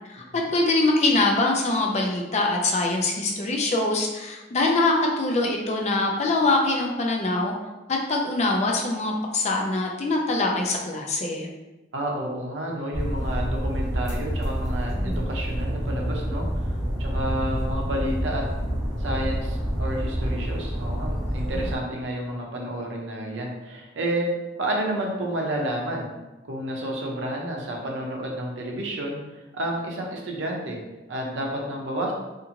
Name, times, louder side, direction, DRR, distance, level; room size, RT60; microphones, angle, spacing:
voice 1, 0.1-7.5 7.9-11.5 15.0-15.2, left 2 dB, 40° left, 0 dB, 0.4 m, -23 dB
voice 2, 11.9-16.5 17.0-18.4 19.0-24.3 24.6-26.1 26.5-30.8 31.1-32.1, right 1 dB, 80° right, -1 dB, 0.6 m, -30 dB
sound 1, 12.9-21.8, equal, 20° right, 0.8 m, -28 dB
2.5 x 2.5 x 2.8 m, 1.1 s
head